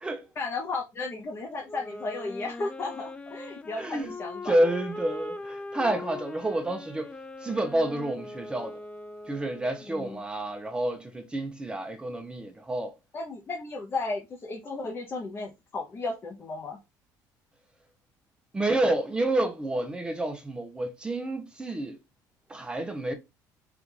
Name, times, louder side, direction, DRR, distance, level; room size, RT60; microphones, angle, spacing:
voice 1, 0.4-4.5 9.9-10.2 13.1-16.8, left 3 dB, 30° left, 0.8 m, -34 dB
Wind instrument woodwind instrument, 1.7-10.0, left 2 dB, 15° left, 0.4 m, -41 dB
voice 2, 3.8-4.1 4.4-7.1 7.4-8.8 9.3-12.9 18.5-22.0 22.5-23.1, right 1 dB, 10° right, 0.7 m, -29 dB
4.5 x 2.6 x 3.7 m
cardioid pair, 130°, 8 cm